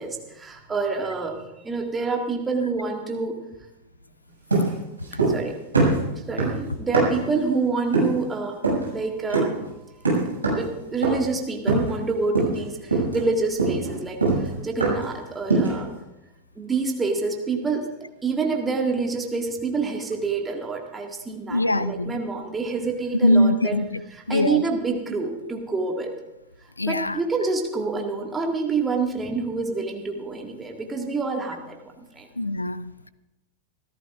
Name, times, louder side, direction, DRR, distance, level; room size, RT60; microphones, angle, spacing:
voice 1, 0.0-1.4 1.6-3.4 5.1-5.6 6.1-9.5 10.6-15.9 16.6-17.9 18.2-23.8 24.1-26.1 26.9-31.8 32.1-32.3, right 4 dB, 15° right, 2 dB, 1.9 m, -27 dB
sound 1, 4.5-5.5 5.7-7.3 7.9-8.2 8.6-8.9 9.3-9.6 10.1-10.7 11.0-11.3 11.7-12.1 12.4-12.6 12.9-15.2 15.5-15.9, right 3 dB, 80° right, 6.4 m, -23 dB
voice 2, 21.5-22.2 23.2-24.0 24.3-24.6 26.8-27.2 32.4-33.1, left 1 dB, 85° left, 17 dB, 0.4 m, -22 dB
26.5 x 14.0 x 2.5 m, 0.92 s
figure-of-eight pair, 90°, 0 cm